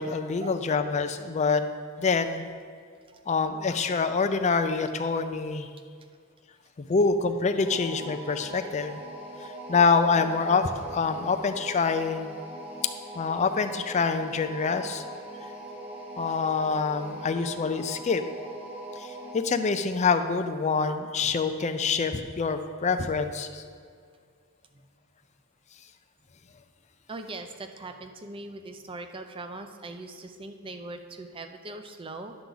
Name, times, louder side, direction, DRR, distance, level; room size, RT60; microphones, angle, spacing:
voice 1, 0.0-1.6 2.0-2.5 3.3-5.7 6.9-9.0 9.7-12.3 13.2-15.0 16.2-18.2 19.0-19.1 19.3-23.6, left 4 dB, 30° left, 8 dB, 0.4 m, -26 dB
sound 1, 7.6-19.4, right 1 dB, 10° right, 1.2 m, -41 dB
voice 2, 27.1-32.3, right 2 dB, 25° right, 7 dB, 0.5 m, -41 dB
9.7 x 7.0 x 3.9 m, 2.1 s
head